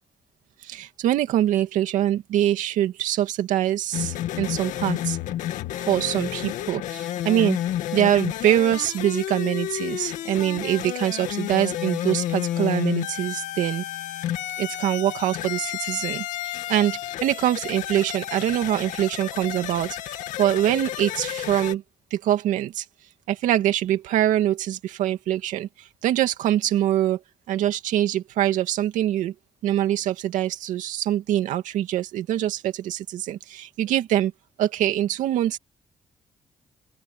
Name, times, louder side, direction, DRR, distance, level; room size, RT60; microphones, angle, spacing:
voice 1, 0.6-5.2 5.9-7.6 7.9-13.8 14.6-21.8 22.1-22.8 23.3-27.2 27.5-29.3 29.6-34.3 34.6-35.6, right 12 dB, 85° right, 2.4 m, -24 dB
sound 1, 3.9-21.7, left 12 dB, 90° left, 2.1 m, -31 dB
open air
supercardioid pair, 65°, 13 cm